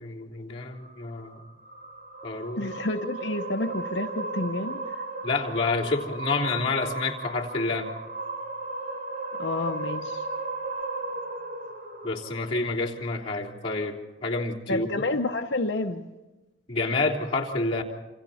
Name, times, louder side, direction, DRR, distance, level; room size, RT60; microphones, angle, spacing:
voice 1, 0.0-1.4 2.2-2.7 5.2-7.9 12.0-13.9 14.2-14.9 16.7-17.8, left 3 dB, 30° left, -5 dB, 3.4 m, -28 dB
sound 1, 0.7-13.2, right 2 dB, 45° right, 4.0 m, -36 dB
voice 2, 2.6-4.9 9.4-10.3 14.7-16.1, left 2 dB, 65° left, 3 dB, 0.9 m, -29 dB
28.5 x 27.5 x 4.3 m, 1.1 s
head